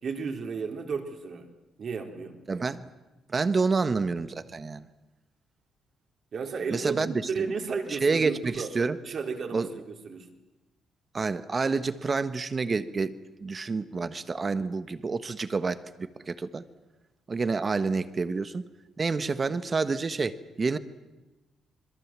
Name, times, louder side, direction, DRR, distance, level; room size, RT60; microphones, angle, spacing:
voice 1, 0.0-1.5 1.8-2.4 6.3-8.7 9.0-10.3, right 5 dB, 55° right, 3 dB, 3.8 m, -33 dB
voice 2, 2.5-2.9 3.3-4.9 6.7-7.3 7.9-9.0 9.5-9.7 11.1-16.6 17.3-18.6 19.0-20.8, right 4 dB, 35° right, 12 dB, 1.4 m, -28 dB
27.0 x 22.0 x 7.6 m, 1.1 s
cardioid pair, 90°, 0 cm